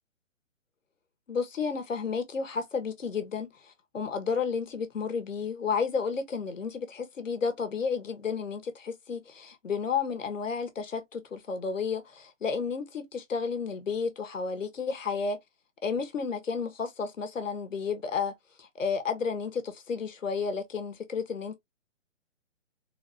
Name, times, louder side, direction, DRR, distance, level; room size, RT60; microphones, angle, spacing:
voice 1, 1.3-15.4 15.8-21.5, left 5 dB, 80° left, 1.4 m, -32 dB
4.0 x 2.1 x 2.6 m
hypercardioid pair, 170°, 38 cm